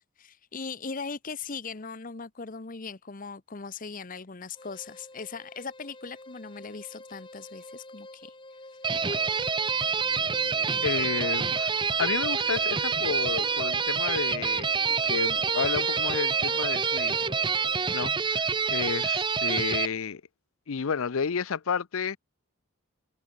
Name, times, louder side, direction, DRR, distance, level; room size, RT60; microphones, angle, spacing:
voice 1, 0.0-8.3 9.1-9.2, left 5 dB, 40° left, 0.8 m, -39 dB
sound 1, 4.5-18.2, left 2 dB, 25° left, 4.2 m, -48 dB
sound 2, 8.8-19.9, right 5 dB, 20° right, 0.8 m, -27 dB
sound 3, 9.0-17.8, left 3 dB, 55° left, 2.3 m, -49 dB
voice 2, 10.8-11.7 12.0-17.2 17.9-20.2 20.7-22.2, left 6 dB, 70° left, 0.6 m, -31 dB
head